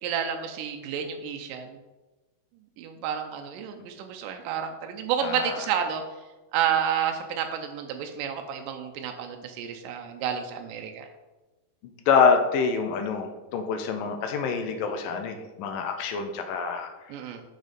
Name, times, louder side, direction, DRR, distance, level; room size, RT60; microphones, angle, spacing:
voice 1, 0.0-1.8 2.8-6.0 6.5-11.1 17.1-17.4, right 8 dB, 80° right, 4 dB, 2.1 m, -30 dB
voice 2, 5.2-5.6 12.1-16.9, left 5 dB, 80° left, 6 dB, 2.3 m, -26 dB
6.5 x 6.4 x 5.1 m, 1.2 s
omnidirectional pair, 4.2 m